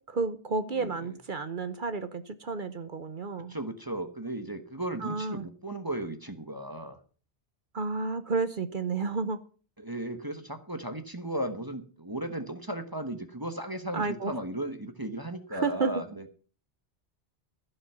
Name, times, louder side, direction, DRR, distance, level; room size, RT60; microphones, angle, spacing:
voice 1, 0.0-3.5 5.0-5.5 7.7-9.4 13.9-14.3 15.5-16.0, right 4 dB, 50° right, 1.0 m, -31 dB
voice 2, 0.7-1.2 3.5-7.0 9.8-16.2, right 1 dB, 20° right, 1.2 m, -36 dB
15.0 x 5.6 x 7.2 m
omnidirectional pair, 1.1 m